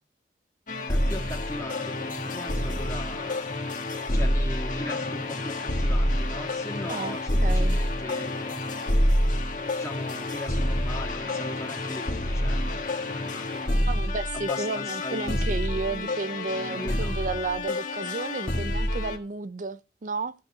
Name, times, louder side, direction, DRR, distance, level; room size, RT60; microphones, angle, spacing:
sound 1, 0.7-19.2, left 1 dB, 45° left, 1.7 m, -28 dB
voice 1, 0.9-3.5 4.1-8.6 9.7-13.9 14.3-15.6 16.7-17.2, left 1 dB, 15° left, 2.1 m, -39 dB
voice 2, 7.4-7.8 13.8-20.3, right 3 dB, 45° right, 0.5 m, -32 dB
13.0 x 5.2 x 6.2 m
head